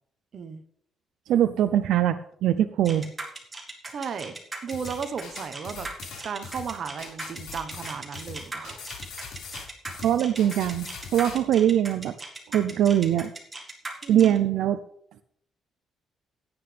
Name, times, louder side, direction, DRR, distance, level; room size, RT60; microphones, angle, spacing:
voice 1, 1.3-3.1 9.9-12.1 12.5-13.3 14.1-14.8, right 11 dB, 70° right, 11 dB, 0.5 m, -22 dB
sound 1, 2.8-14.4, right 3 dB, 15° right, 1.9 m, -38 dB
voice 2, 3.9-4.4 4.6-5.9 6.2-8.8 14.0-14.4, right 6 dB, 40° right, 9 dB, 1.0 m, -35 dB
sound 2, 4.7-11.4, left 5 dB, 65° left, 5.0 m, -41 dB
16.0 x 10.5 x 3.4 m, 0.66 s
cardioid pair, 165°, 0 cm